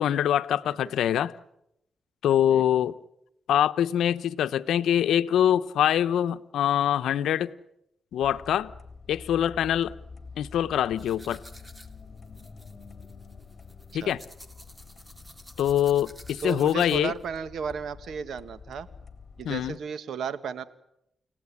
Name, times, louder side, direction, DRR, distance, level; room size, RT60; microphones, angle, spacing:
voice 1, 0.0-1.3 2.2-3.0 3.5-7.5 8.1-8.7 9.1-9.9 10.4-11.4 13.9-14.2 15.6-17.1 19.4-19.7, left 10 dB, 85° left, 0.9 m, -24 dB
sound 1, 8.2-19.8, left 4 dB, 45° left, 3.5 m, -47 dB
sound 2, 11.0-17.2, equal, 10° right, 3.0 m, -51 dB
voice 2, 16.4-18.9 19.4-20.6, right 6 dB, 75° right, 1.7 m, -34 dB
30.0 x 17.5 x 9.8 m
cardioid pair, 75°, 0 cm